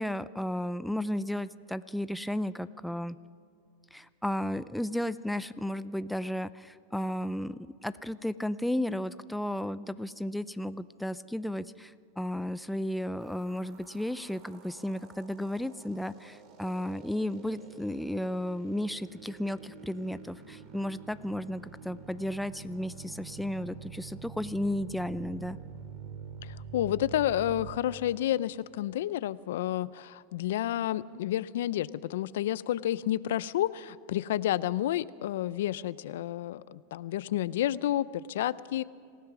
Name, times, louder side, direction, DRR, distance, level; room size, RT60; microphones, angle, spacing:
voice 1, 0.0-3.2 3.9-25.6, left 1 dB, ahead, 14 dB, 0.5 m, -34 dB
sound 1, 13.2-27.8, right 7 dB, 45° right, 2.7 m, -47 dB
voice 2, 26.4-38.8, left 12 dB, 80° left, 18 dB, 0.5 m, -30 dB
27.0 x 16.0 x 6.1 m, 2.3 s
supercardioid pair, 125°, 0 cm